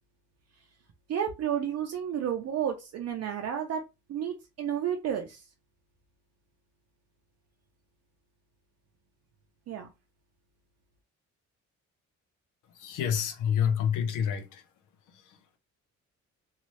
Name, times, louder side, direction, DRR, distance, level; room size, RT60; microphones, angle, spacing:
voice 1, 1.1-3.8 4.1-5.4 9.7-9.9, right 9 dB, 55° right, 0.6 m, -31 dB
voice 2, 12.8-14.6, left 8 dB, 85° left, 0.7 m, -28 dB
2.7 x 2.4 x 3.1 m
cardioid pair, 90°, 30 cm